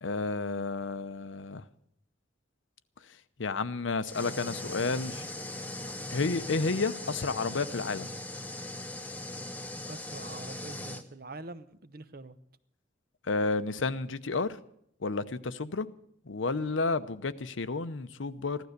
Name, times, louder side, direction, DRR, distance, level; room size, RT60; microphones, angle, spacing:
voice 1, 0.0-1.6 3.4-5.2 6.1-8.1 13.3-14.5 15.0-15.9 16.3-18.6, left 3 dB, 90° left, 0.8 m, -31 dB
sound 1, 4.1-11.0, left 1 dB, 10° left, 0.9 m, -39 dB
voice 2, 9.9-12.4, right 2 dB, 50° right, 0.8 m, -45 dB
15.5 x 12.0 x 6.6 m
head